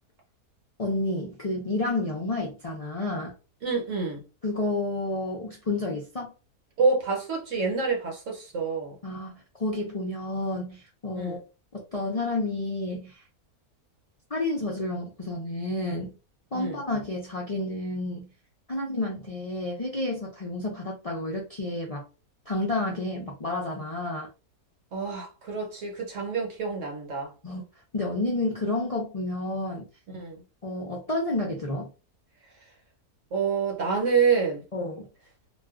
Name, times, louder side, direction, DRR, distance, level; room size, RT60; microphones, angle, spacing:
voice 1, 0.8-3.3 4.4-6.3 9.0-11.4 11.7-13.2 14.3-16.2 16.5-18.3 18.7-22.0 22.5-24.3 27.4-27.6 27.9-29.9 30.6-31.9 34.7-35.1, left 2 dB, 50° left, 0.4 m, -30 dB
voice 2, 3.6-4.2 6.8-9.0 11.1-11.4 16.5-16.8 24.9-27.3 30.1-30.4 33.3-34.6, right 5 dB, 60° right, 1.1 m, -27 dB
2.5 x 2.3 x 3.5 m
omnidirectional pair, 1.6 m